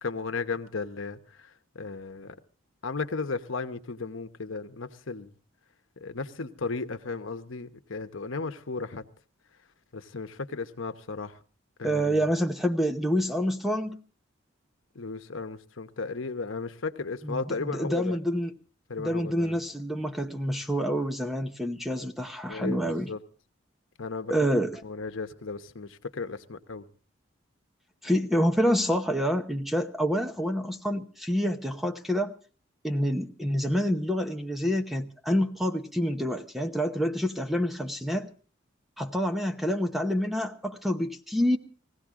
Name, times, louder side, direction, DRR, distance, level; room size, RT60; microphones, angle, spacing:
voice 1, 0.0-2.3 2.8-5.3 6.0-9.0 9.9-11.4 11.8-12.3 14.9-18.2 18.9-19.6 22.5-23.2 24.0-24.3 24.8-26.9, left 4 dB, 80° left, 1.0 m, -35 dB
voice 2, 11.8-14.0 17.2-18.5 19.0-23.1 24.3-24.8 28.0-32.3 32.8-38.3 39.0-41.6, equal, ahead, 0.8 m, -27 dB
21.0 x 16.0 x 3.7 m
head